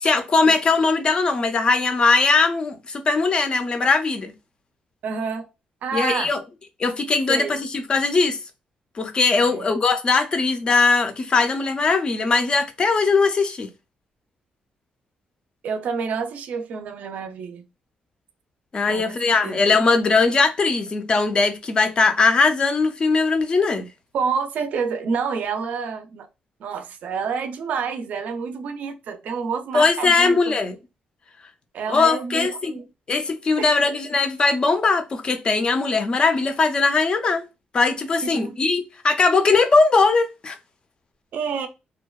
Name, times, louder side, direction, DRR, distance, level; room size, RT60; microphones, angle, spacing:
voice 1, 0.0-4.3 5.9-6.4 6.8-8.4 9.0-13.7 18.7-23.9 29.7-30.8 31.9-32.7 33.1-37.4 37.7-40.6, left 4 dB, 35° left, 0.4 m, -20 dB
voice 2, 5.0-5.5 5.8-6.3 7.3-7.6 9.3-9.7 15.6-17.6 18.9-19.6 24.1-26.3 26.6-30.6 31.7-32.9 33.6-33.9 38.3-38.6 41.3-41.7, right 5 dB, 70° right, 0.4 m, -28 dB
2.7 x 2.1 x 2.2 m
cardioid pair, 140°, 3 cm